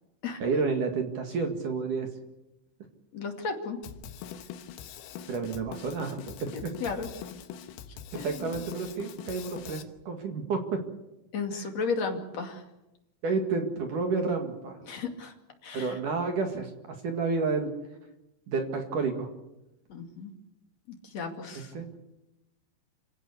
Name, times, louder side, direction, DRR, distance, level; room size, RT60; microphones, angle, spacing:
voice 1, 0.4-2.1 5.3-6.7 8.1-10.8 11.5-11.6 13.2-14.8 15.7-17.7 18.5-19.3 21.7-21.9, right 4 dB, 55° right, 4 dB, 2.7 m, -30 dB
voice 2, 3.1-3.8 6.5-7.1 8.2-8.6 11.3-12.6 14.9-15.3 15.6-16.0 19.9-20.3 20.9-21.7, left 4 dB, 45° left, 4 dB, 2.7 m, -34 dB
Drum kit, 3.8-9.8, left 8 dB, 90° left, 4.0 m, -43 dB
27.5 x 17.0 x 8.4 m, 0.94 s
omnidirectional pair, 5.9 m